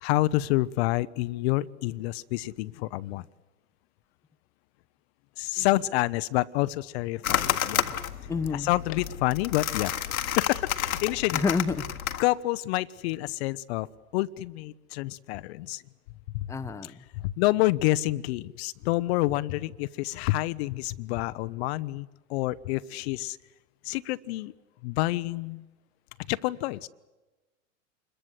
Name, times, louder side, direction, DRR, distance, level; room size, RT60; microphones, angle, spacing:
voice 1, 0.0-3.2 5.4-7.8 8.5-11.4 12.2-13.9 14.1-15.8 16.3-16.5 16.8-23.4 23.8-24.5 24.8-25.6 26.3-26.9, left 18 dB, 50° left, 0.7 m, -28 dB
sound 1, 7.2-12.2, left 10 dB, 80° left, 1.4 m, -30 dB
voice 2, 8.3-8.7 11.3-11.9 16.5-17.0, left 4 dB, 5° left, 0.7 m, -29 dB
26.5 x 21.5 x 8.1 m
hypercardioid pair, 105°, 41 cm